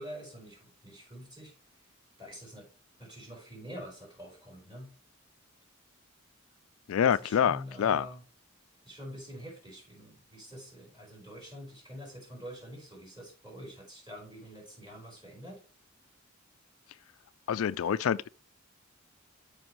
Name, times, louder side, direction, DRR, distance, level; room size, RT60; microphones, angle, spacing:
voice 1, 0.0-1.5 2.2-2.7 3.0-4.9 7.2-8.2 8.8-15.6, equal, 20° right, 4.9 m, -46 dB
voice 2, 6.9-8.1 17.5-18.3, left 8 dB, 75° left, 0.3 m, -26 dB
13.0 x 5.0 x 3.1 m
head